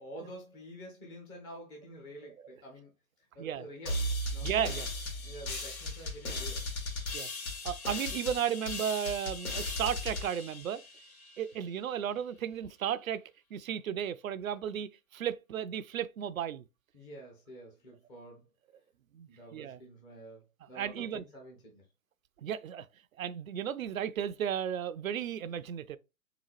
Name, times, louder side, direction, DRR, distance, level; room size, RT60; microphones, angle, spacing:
voice 1, 0.0-2.9 3.2-4.5 5.2-6.7 16.9-18.5 19.3-21.9, equal, 10° left, 0.4 m, -48 dB
sound 1, 3.9-11.4, left 1 dB, 75° left, 1.7 m, -37 dB
voice 2, 4.4-4.9 7.1-7.3 7.6-10.8 11.4-13.2 13.5-16.6 19.1-19.8 20.8-21.2 22.4-22.9 23.2-26.0, right 9 dB, 70° right, 0.5 m, -34 dB
3.8 x 3.7 x 3.1 m
figure-of-eight pair, 110°, 42 cm